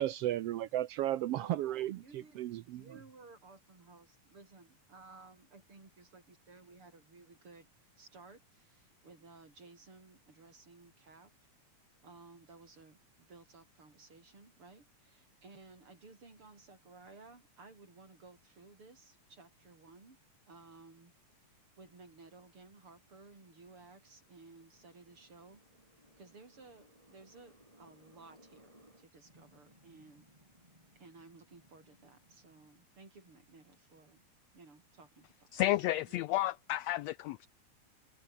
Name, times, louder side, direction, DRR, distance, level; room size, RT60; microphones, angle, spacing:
voice 1, 0.0-2.8, right 13 dB, 80° right, 1.4 m, -34 dB
voice 2, 1.3-7.7 8.0-11.3 12.0-20.2 20.5-21.1 21.8-25.6 26.2-30.3 30.9-34.2 34.5-35.5 35.9-36.2, right 3 dB, 40° right, 6.6 m, -57 dB
sound 1, 20.2-32.7, right 1 dB, 10° right, 7.4 m, -66 dB
voice 3, 35.5-37.5, left 15 dB, 85° left, 1.5 m, -32 dB
omnidirectional pair, 3.6 m